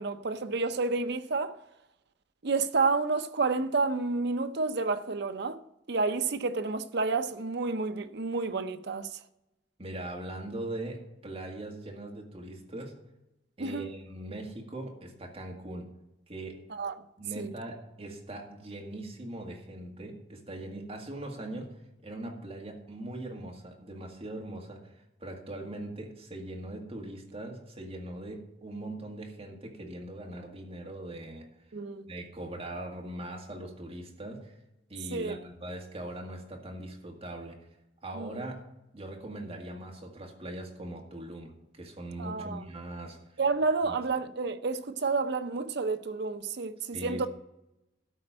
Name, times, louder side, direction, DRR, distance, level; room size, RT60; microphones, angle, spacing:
voice 1, 0.0-1.6 2.4-5.6 5.9-9.1 13.6-13.9 16.7-16.9 17.4-17.5 31.7-32.1 35.1-35.4 38.1-38.4 42.2-42.6 43.4-47.3, right 4 dB, 65° right, 0.7 m, -30 dB
voice 2, 9.8-12.9 13.6-15.9 16.3-16.6 17.2-21.7 22.0-31.5 32.1-34.5 34.9-37.6 38.0-38.6 38.9-43.2 43.8-43.9 46.9-47.3, right 1 dB, 35° right, 1.9 m, -41 dB
13.0 x 4.4 x 8.6 m
head